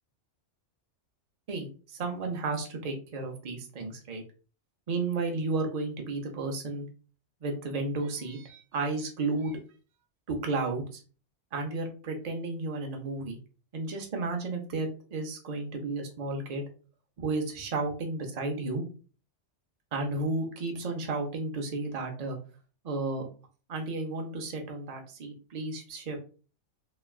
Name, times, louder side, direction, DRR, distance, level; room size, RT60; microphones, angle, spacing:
voice 1, 1.5-4.2 4.9-6.9 7.4-9.6 10.3-11.0 11.5-13.4 13.7-16.7 17.2-18.8 19.9-22.4 22.8-23.3 23.7-26.2, right 3 dB, 45° right, 3 dB, 0.5 m, -33 dB
3.1 x 2.2 x 2.3 m, 0.37 s
omnidirectional pair, 1.2 m